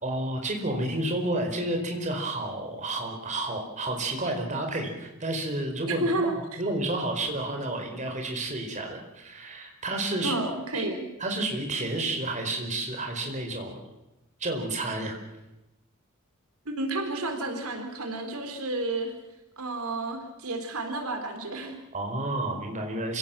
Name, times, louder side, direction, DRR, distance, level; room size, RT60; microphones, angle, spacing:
voice 1, 0.0-6.3 6.6-10.3 10.7-10.8 11.2-13.8 14.4-15.2 21.9-23.2, right 2 dB, 35° right, 3 dB, 4.5 m, -30 dB
voice 2, 5.9-6.6 10.2-11.1 16.7-19.1 19.6-21.8, right 2 dB, 90° right, 5 dB, 4.1 m, -31 dB
27.5 x 17.5 x 7.6 m, 0.95 s
head